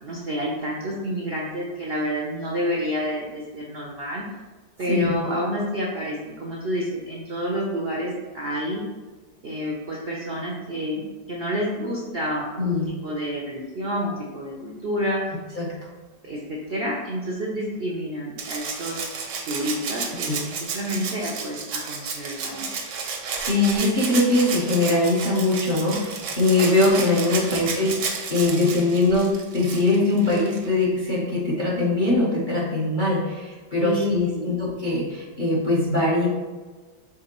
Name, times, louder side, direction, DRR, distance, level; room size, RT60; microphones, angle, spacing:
voice 1, 0.0-4.3 4.8-8.8 9.4-12.8 13.0-15.3 16.3-19.0 19.4-22.7 27.4-27.9 33.8-34.7, equal, 60° right, -3 dB, 0.6 m, -29 dB
voice 2, 12.6-12.9 15.5-15.9 20.2-20.4 23.4-36.3, left 2 dB, 40° left, -6 dB, 0.7 m, -22 dB
Rattle (instrument), 18.4-30.7 32.1-32.2, right 5 dB, 80° right, 1.4 m, -32 dB
5.0 x 3.5 x 2.9 m, 1.3 s
omnidirectional pair, 1.8 m